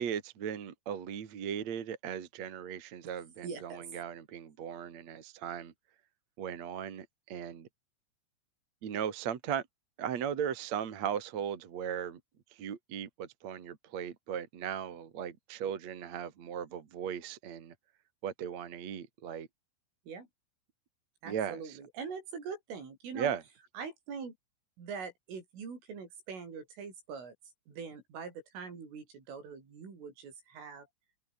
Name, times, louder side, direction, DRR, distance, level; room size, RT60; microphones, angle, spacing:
voice 1, 0.0-5.7 6.4-7.7 8.8-9.6 10.0-12.2 12.6-17.7 18.2-19.5 21.3-21.6 23.1-23.4, right 8 dB, 45° right, 2.6 m, -37 dB
voice 2, 3.4-3.8 20.1-20.3 21.2-23.3 23.8-24.4 24.8-27.3 27.7-30.9, right 5 dB, 70° right, 9.1 m, -43 dB
open air
omnidirectional pair, 6.0 m